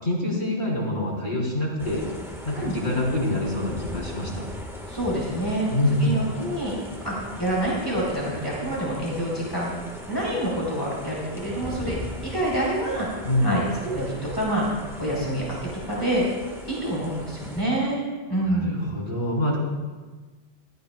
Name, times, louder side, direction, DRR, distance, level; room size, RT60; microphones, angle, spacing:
voice 1, 0.0-2.0 2.4-4.4 5.7-6.3 13.2-13.6 18.5-19.6, left 1 dB, 40° left, -4 dB, 3.5 m, -25 dB
sound 1, 1.8-17.6, equal, ahead, 1.5 m, -38 dB
voice 2, 4.9-6.8 7.0-9.7 10.1-11.9 12.2-13.1 13.4-16.2 16.7-18.0 18.3-18.8, right 1 dB, 20° left, -6 dB, 4.3 m, -27 dB
18.5 x 13.5 x 2.3 m, 1.3 s
omnidirectional pair, 1.2 m